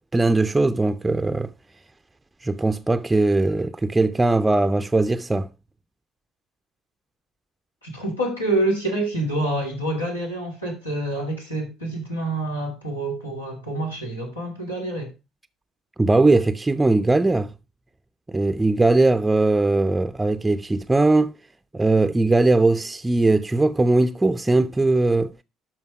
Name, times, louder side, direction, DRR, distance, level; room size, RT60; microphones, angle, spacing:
voice 1, 0.1-1.5 2.4-5.5 16.0-17.5 18.3-21.3 21.7-25.3, right 2 dB, 15° right, 0.5 m, -20 dB
voice 2, 7.8-15.1, right 1 dB, 85° left, 2.4 m, -27 dB
12.5 x 4.6 x 4.6 m
figure-of-eight pair, 50°, 0 cm